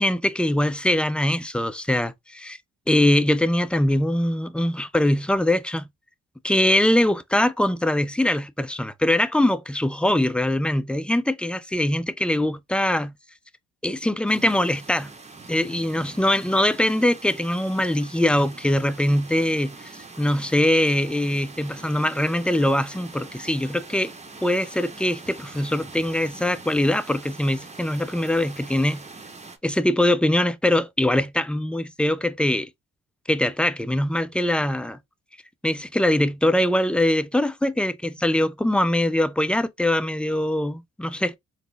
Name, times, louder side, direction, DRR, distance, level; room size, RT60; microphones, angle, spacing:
voice 1, 0.0-2.6 2.9-5.9 6.4-13.1 13.8-15.1 15.5-19.9 20.2-24.1 24.4-29.0 29.6-32.7 33.3-35.0 35.6-41.3, left 1 dB, 5° left, 0.3 m, -22 dB
sound 1, 14.3-29.6, right 3 dB, 20° right, 0.8 m, -43 dB
4.1 x 2.0 x 3.3 m
cardioid pair, 90°, 30 cm